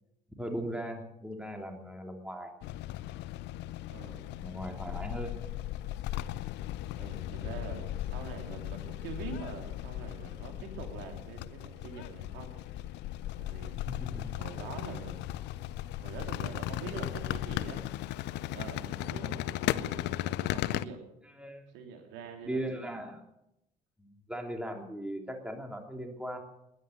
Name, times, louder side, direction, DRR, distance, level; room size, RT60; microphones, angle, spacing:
voice 1, 0.4-2.5 4.4-5.4 13.8-14.3 19.1-19.5 21.3-21.7 22.4-23.2 24.0-26.4, right 1 dB, 5° right, 3 dB, 3.1 m, -38 dB
sound 1, 2.6-20.8, left 14 dB, 55° left, 0.6 m, -37 dB
voice 2, 3.9-4.3 7.0-12.5 13.4-14.0 14.4-15.2 16.0-17.8 18.5-21.0 21.7-23.0, right 5 dB, 65° right, 3 dB, 3.3 m, -44 dB
20.0 x 10.0 x 6.7 m, 0.83 s
figure-of-eight pair, 50°, 21 cm